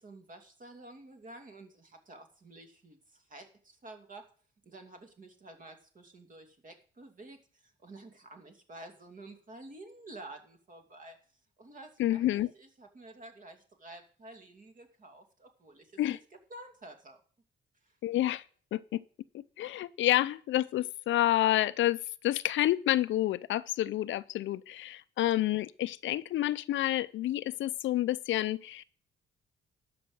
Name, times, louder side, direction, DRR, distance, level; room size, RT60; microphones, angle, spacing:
voice 1, 0.0-4.3 4.6-11.2 11.6-16.2 16.5-17.2 17.8-18.0, right 2 dB, 40° right, 2.7 m, -50 dB
voice 2, 12.0-12.5 16.0-16.2 18.0-18.4 18.7-19.0 19.3-28.8, left 14 dB, 75° left, 0.6 m, -29 dB
12.0 x 5.7 x 7.9 m
cardioid pair, 90°, 20 cm